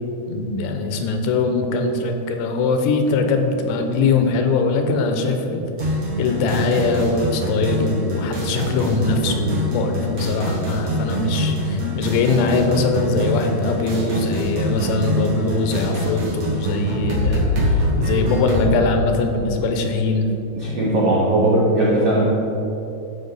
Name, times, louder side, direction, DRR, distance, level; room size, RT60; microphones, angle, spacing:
voice 1, 0.3-5.7 6.2-20.3, left 3 dB, 85° left, 5 dB, 3.0 m, -22 dB
sound 1, 5.8-18.7, equal, 50° right, 2.2 m, -24 dB
voice 2, 20.6-22.2, right 1 dB, 85° right, -7 dB, 1.3 m, -18 dB
13.0 x 5.8 x 4.0 m, 3.0 s
omnidirectional pair, 5.1 m